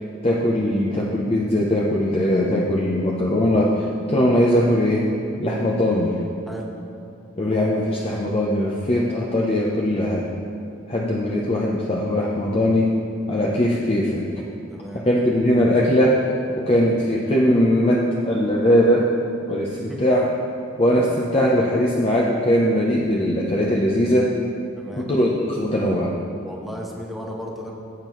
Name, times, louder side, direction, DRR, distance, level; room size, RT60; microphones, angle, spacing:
voice 1, 0.2-5.1 5.4-6.1 7.4-10.3 10.9-12.9 13.3-14.2 15.1-16.2 16.5-19.1 19.5-20.3 20.8-24.3 24.9-26.1, equal, 30° left, -3 dB, 0.8 m, -20 dB
voice 2, 14.7-15.0 19.9-20.0 24.7-25.1 26.4-27.7, equal, ahead, -2 dB, 1.1 m, -35 dB
15.5 x 8.8 x 3.1 m, 2.6 s
head